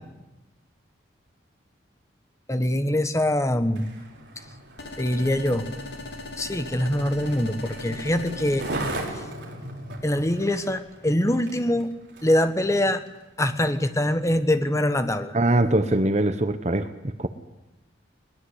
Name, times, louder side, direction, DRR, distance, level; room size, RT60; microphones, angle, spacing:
voice 1, 2.5-3.9 5.0-5.7 6.4-8.6 10.0-11.9 12.2-13.0 13.4-15.4, left 1 dB, 15° left, 9 dB, 1.3 m, -23 dB
Skateboard, 3.6-12.5 13.1-13.2, right 1 dB, 60° right, 4.8 m, -38 dB
sound 1, 4.8-9.1, left 2 dB, 55° left, 3.9 m, -39 dB
voice 2, 15.3-17.3, right 1 dB, 35° right, 10 dB, 1.0 m, -22 dB
21.5 x 20.5 x 8.2 m, 1.0 s
head